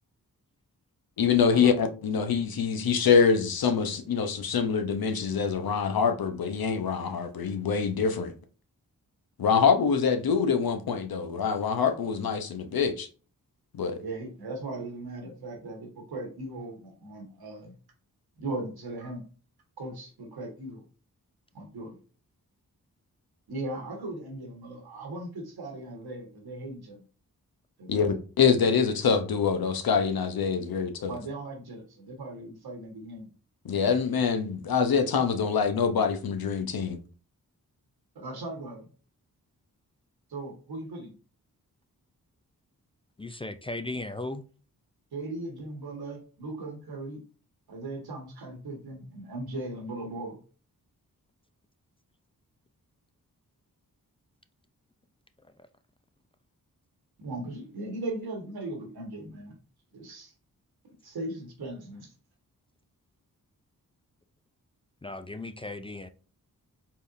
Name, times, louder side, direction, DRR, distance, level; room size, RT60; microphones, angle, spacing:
voice 1, 1.2-8.3 9.4-13.1 13.8-14.0 27.9-31.2 33.6-37.0, left 6 dB, 70° left, 0.8 m, -25 dB
voice 2, 14.0-17.7 18.4-19.2 19.8-20.8 21.5-22.0 23.5-27.0 27.8-28.1 31.1-33.3 38.1-38.9 40.3-41.1 45.1-47.2 47.7-50.4 57.2-59.6 59.9-60.3 60.8-62.1, right 2 dB, 85° right, 1.4 m, -38 dB
voice 3, 43.2-44.4 65.0-66.1, left 2 dB, 15° left, 0.4 m, -36 dB
4.3 x 3.6 x 2.6 m
cardioid pair, 45°, 37 cm